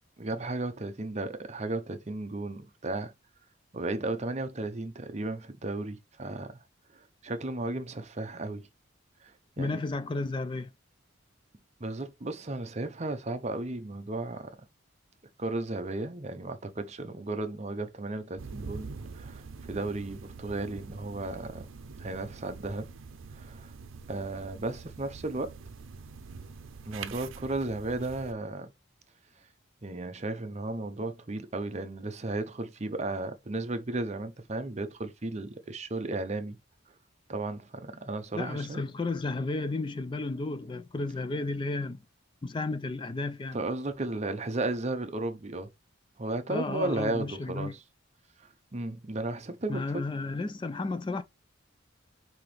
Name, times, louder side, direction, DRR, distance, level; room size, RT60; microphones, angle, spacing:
voice 1, 0.2-3.1 3.7-6.6 6.9-8.7 9.2-9.3 9.6-9.8 11.8-14.6 15.4-21.7 22.0-22.9 23.3-23.7 24.1-25.6 26.9-28.7 29.8-36.6 37.3-38.8 43.5-45.7 46.2-47.8 48.4-49.8, right 2 dB, 35° right, 0.7 m, -34 dB
voice 2, 9.6-10.7 38.3-42.0 42.4-43.6 46.5-47.7 49.7-51.2, left 3 dB, 25° left, 0.3 m, -33 dB
sound 1, 18.4-28.3, right 5 dB, 85° right, 0.6 m, -45 dB
5.6 x 2.8 x 3.3 m
head